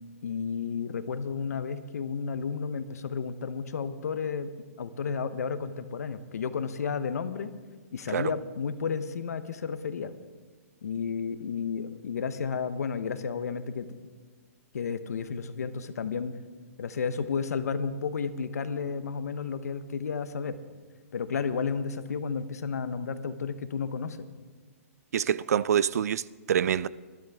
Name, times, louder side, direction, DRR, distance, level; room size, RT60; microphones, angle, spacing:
voice 1, 0.2-4.5 4.8-7.5 7.9-10.1 10.8-13.9 14.7-16.3 16.8-20.6 21.1-24.3, left 6 dB, 85° left, 1.0 m, -32 dB
voice 2, 25.1-26.9, right 9 dB, 75° right, 0.4 m, -26 dB
20.5 x 13.0 x 3.6 m
hypercardioid pair, 160°, 8 cm